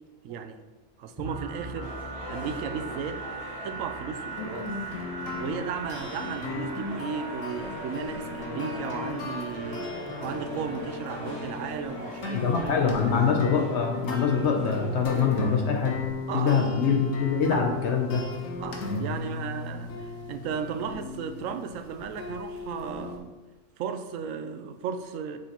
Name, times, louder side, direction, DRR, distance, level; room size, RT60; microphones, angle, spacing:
voice 1, 0.2-0.6 1.0-2.0 2.3-3.2 3.6-4.7 5.4-13.2 16.3-16.6 17.5-17.7 18.6-23.3 23.8-25.4, right 7 dB, 90° right, 8 dB, 1.0 m, -35 dB
sound 1, 1.2-12.9, right 3 dB, 25° right, 0.7 m, -41 dB
sound 2, 1.8-15.6, equal, 25° left, 1.4 m, -44 dB
sound 3, 4.3-23.2, left 3 dB, 85° left, 1.3 m, -35 dB
voice 2, 12.3-16.0 16.3-18.3, left 6 dB, 65° left, 2 dB, 0.9 m, -24 dB
6.5 x 6.2 x 2.9 m, 1.2 s
omnidirectional pair, 1.3 m